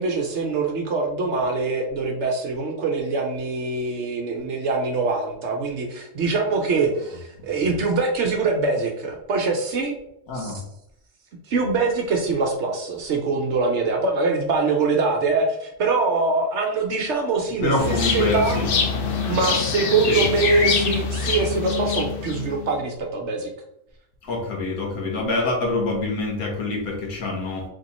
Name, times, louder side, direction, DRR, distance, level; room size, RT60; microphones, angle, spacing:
voice 1, 0.0-9.9 10.3-10.5 11.5-18.6 19.3-23.5, right 3 dB, 60° right, 2 dB, 0.8 m, -23 dB
voice 2, 17.6-18.6 20.1-20.2 24.2-27.6, left 2 dB, 80° left, -1 dB, 1.6 m, -25 dB
sound 1, 17.8-22.8, left 5 dB, 60° left, 0.6 m, -25 dB
3.6 x 2.9 x 4.1 m, 0.79 s
omnidirectional pair, 1.5 m